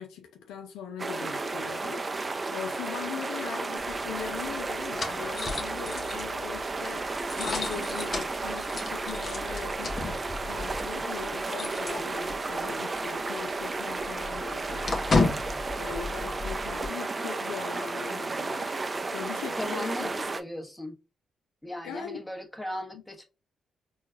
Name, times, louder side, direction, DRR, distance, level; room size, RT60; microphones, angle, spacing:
voice 1, 0.0-20.1 21.8-22.2, left 8 dB, 80° left, 0.4 m, -40 dB
sound 1, 1.0-20.4, right 3 dB, 35° right, 0.5 m, -33 dB
sound 2, 3.8-12.6 12.9-13.1 13.4-16.9, left 3 dB, 45° left, 0.8 m, -34 dB
voice 2, 19.5-21.0 21.6-23.2, left 1 dB, 10° left, 1.1 m, -37 dB
4.4 x 2.3 x 2.4 m
hypercardioid pair, 50°, 0 cm